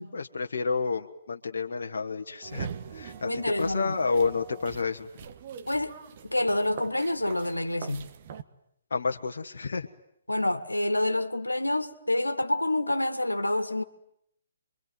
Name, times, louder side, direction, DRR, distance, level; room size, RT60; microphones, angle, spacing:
voice 1, 0.1-2.7 2.9-3.3 3.6-5.1 8.9-9.9, left 4 dB, 60° left, 1.4 m, -29 dB
sound 1, 2.4-8.4, right 7 dB, 40° right, 1.6 m, -42 dB
voice 2, 3.2-3.9 5.7-6.0 6.2-8.1 10.3-13.8, left 1 dB, 85° left, 1.9 m, -27 dB
27.5 x 23.5 x 9.4 m
figure-of-eight pair, 130°, 0 cm